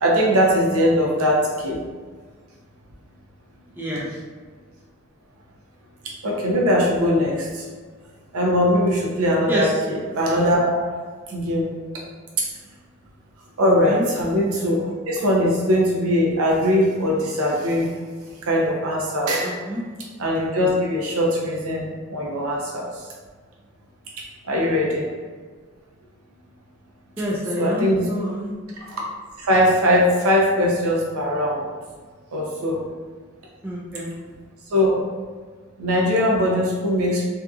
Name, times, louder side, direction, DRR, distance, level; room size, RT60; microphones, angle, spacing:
voice 1, 0.0-1.8 6.0-7.7 8.3-10.9 11.3-11.7 12.4-12.5 13.6-17.9 18.4-19.5 20.2-22.9 24.4-25.1 27.6-28.1 28.9-29.0 29.4-31.7 32.3-32.8 34.7-35.1 35.8-37.3, equal, 85° right, -3 dB, 0.6 m, -21 dB
voice 2, 3.7-4.1 9.5-9.7 13.6-14.0 19.4-19.8 24.5-24.8 27.2-28.5 33.6-34.1, equal, 10° right, -6 dB, 0.4 m, -28 dB
2.7 x 2.4 x 2.3 m, 1.5 s
head